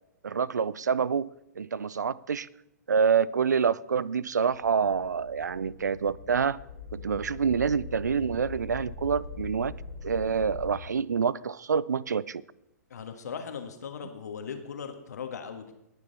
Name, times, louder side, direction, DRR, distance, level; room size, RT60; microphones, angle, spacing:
voice 1, 0.2-1.3 1.6-2.5 2.9-6.6 6.9-9.7 10.0-12.4, right 6 dB, 80° right, 22 dB, 0.4 m, -27 dB
sound 1, 4.5-10.7, left 4 dB, 50° left, 2.4 m, -42 dB
voice 2, 12.9-15.7, left 6 dB, 70° left, 6 dB, 1.7 m, -38 dB
19.5 x 7.0 x 4.1 m, 0.84 s
figure-of-eight pair, 115°, 9 cm